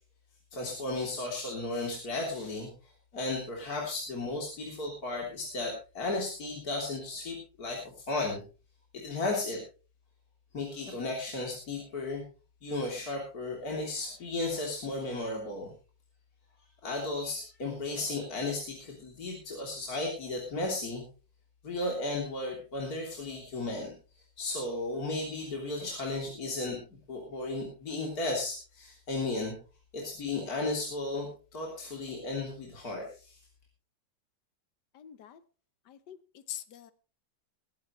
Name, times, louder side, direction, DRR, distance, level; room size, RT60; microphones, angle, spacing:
voice 1, 0.5-2.7 3.1-7.8 8.1-8.4 8.9-9.6 10.5-12.2 12.6-15.7 16.8-21.0 21.6-23.9 24.4-26.8 27.1-29.5 29.9-31.3 31.5-33.4, left 2 dB, 55° left, -1 dB, 3.9 m, -34 dB
voice 2, 34.9-35.4 35.9-36.2 36.5-36.9, left 10 dB, 70° left, 14 dB, 1.5 m, -43 dB
21.0 x 11.5 x 3.2 m, 0.34 s
omnidirectional pair, 1.9 m